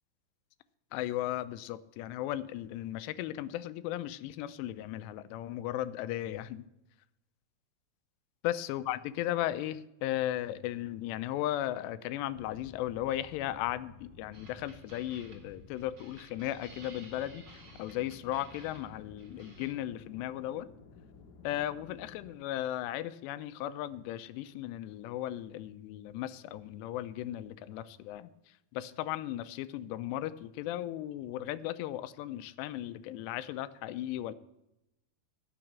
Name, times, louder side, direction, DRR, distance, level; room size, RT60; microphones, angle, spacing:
voice 1, 0.9-6.6 8.4-20.7 21.4-28.3 28.7-34.3, left 13 dB, 90° left, 14 dB, 2.8 m, -36 dB
sound 1, 12.3-22.3, left 4 dB, 70° left, 2.7 m, -54 dB
sound 2, 14.3-19.7, right 2 dB, 40° right, 1.6 m, -55 dB
14.0 x 6.3 x 7.3 m, 0.88 s
omnidirectional pair, 4.8 m